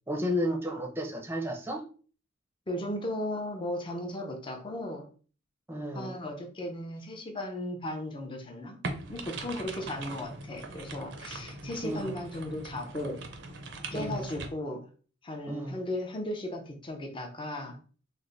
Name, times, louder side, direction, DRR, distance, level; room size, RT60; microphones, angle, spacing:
voice 1, 0.1-1.8 5.7-6.2 11.8-12.2 13.9-14.3 15.5-15.8, equal, 10° right, 1 dB, 0.6 m, -32 dB
voice 2, 2.7-5.1 5.9-8.8 9.1-13.2 13.9-14.8 15.2-17.8, left 1 dB, 25° left, 3 dB, 0.6 m, -36 dB
sound 1, 8.8-14.5, right 3 dB, 65° right, 0.6 m, -41 dB
3.2 x 2.1 x 3.9 m, 0.40 s
head